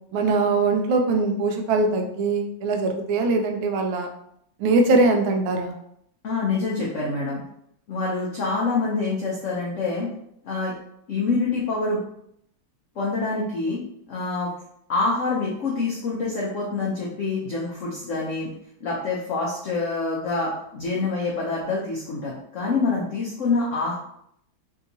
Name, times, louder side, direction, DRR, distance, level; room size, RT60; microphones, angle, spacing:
voice 1, 0.1-4.1 4.6-5.7, right 3 dB, 80° right, 4 dB, 1.3 m, -22 dB
voice 2, 6.2-7.4 7.9-10.1 10.4-10.7 11.1-12.0 13.0-13.8 14.1-14.5 14.9-18.5 18.8-23.9, left 3 dB, 90° left, -4 dB, 0.6 m, -26 dB
3.4 x 2.8 x 2.6 m, 0.72 s
omnidirectional pair, 2.2 m